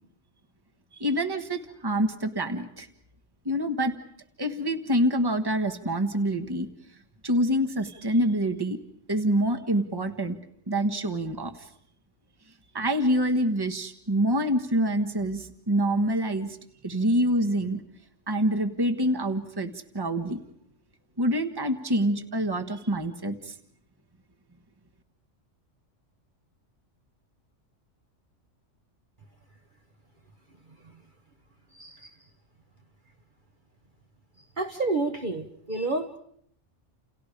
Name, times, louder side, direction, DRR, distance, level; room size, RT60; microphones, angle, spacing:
voice 1, 1.0-2.9 3.4-3.9 4.4-6.7 7.2-8.8 9.1-10.4 10.7-11.7 12.7-16.6 16.8-17.8 18.3-20.4 21.2-23.5, equal, 20° right, 8 dB, 1.5 m, -26 dB
voice 2, 34.6-36.1, right 3 dB, 40° right, 5 dB, 1.5 m, -29 dB
29.5 x 29.5 x 5.1 m, 0.65 s
omnidirectional pair, 1.3 m